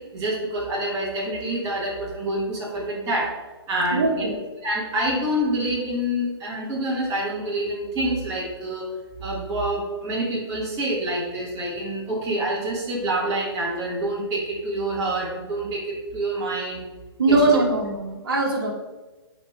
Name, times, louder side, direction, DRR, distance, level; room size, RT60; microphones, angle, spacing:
voice 1, 0.1-3.3 3.7-4.3 4.6-8.9 9.2-16.8 17.3-17.6, right 1 dB, 25° right, -3 dB, 1.5 m, -27 dB
voice 2, 3.9-4.4 17.2-18.7, right 2 dB, 55° right, 1 dB, 1.6 m, -21 dB
10.0 x 3.4 x 3.4 m, 1.2 s
figure-of-eight pair, 120°, 14 cm